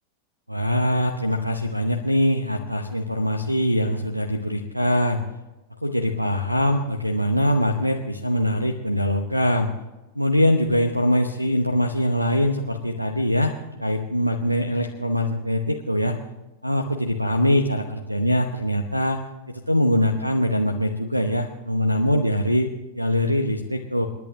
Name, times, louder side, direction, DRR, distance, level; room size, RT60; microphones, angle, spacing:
voice 1, 0.5-5.2 5.8-9.7 10.1-16.2 16.6-19.2 19.5-22.7 23.0-24.1, equal, 90° right, 7 dB, 0.9 m, -23 dB
28.0 x 11.0 x 2.8 m, 1.1 s
figure-of-eight pair, 90°, 0 cm